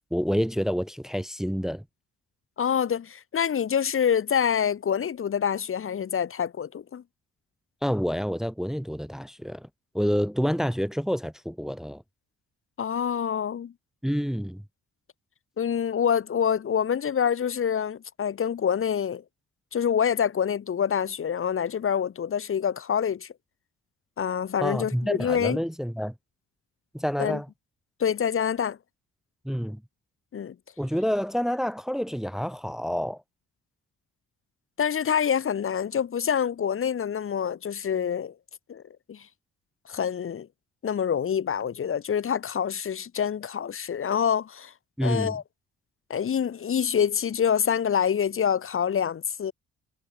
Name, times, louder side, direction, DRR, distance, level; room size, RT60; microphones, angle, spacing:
voice 1, 0.1-1.8 7.8-9.7 9.9-12.0 14.0-14.6 24.6-26.1 26.9-27.5 29.4-29.8 30.8-33.2 45.0-45.4, equal, ahead, 1.2 m, -28 dB
voice 2, 2.6-7.0 12.8-13.7 15.6-19.2 19.7-23.3 24.2-25.6 27.2-27.4 28.0-28.8 30.3-30.5 34.8-38.3 38.7-38.8 39.1-39.3 39.9-40.5 40.8-44.7 45.0-45.4 46.1-49.5, left 8 dB, 45° left, 1.3 m, -26 dB
cardioid pair, 90°, 30 cm